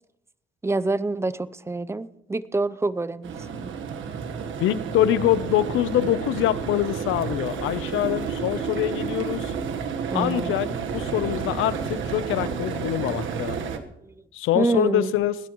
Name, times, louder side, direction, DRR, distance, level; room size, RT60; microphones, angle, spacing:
voice 1, 0.6-3.3 3.6-3.7 10.1-10.6 13.8-14.1 14.5-15.1, right 2 dB, 15° right, 17 dB, 0.6 m, -26 dB
sound 1, 3.2-13.8, right 6 dB, 75° right, 1.4 m, -31 dB
voice 2, 4.6-9.5 10.1-10.7 10.9-13.6 14.3-15.4, left 12 dB, 90° left, 15 dB, 0.8 m, -24 dB
22.0 x 17.0 x 3.1 m, 0.83 s
cardioid pair, 90°, 20 cm